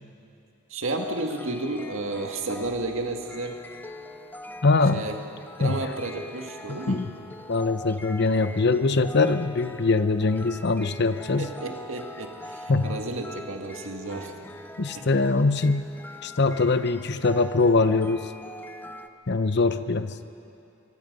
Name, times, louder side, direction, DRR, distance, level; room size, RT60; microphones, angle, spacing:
voice 1, 0.7-3.6 4.9-5.2 5.6-7.0 11.4-14.3 14.9-15.1, right 2 dB, 70° right, 3 dB, 2.0 m, -32 dB
sound 1, 0.8-19.1, left 1 dB, 10° left, 0.7 m, -43 dB
voice 2, 4.6-5.0 5.6-5.9 6.7-7.1 7.5-11.5 12.7-13.0 14.8-15.8 16.2-18.3 19.3-20.1, left 3 dB, 55° left, 11 dB, 0.8 m, -23 dB
24.0 x 24.0 x 5.4 m, 2.7 s
head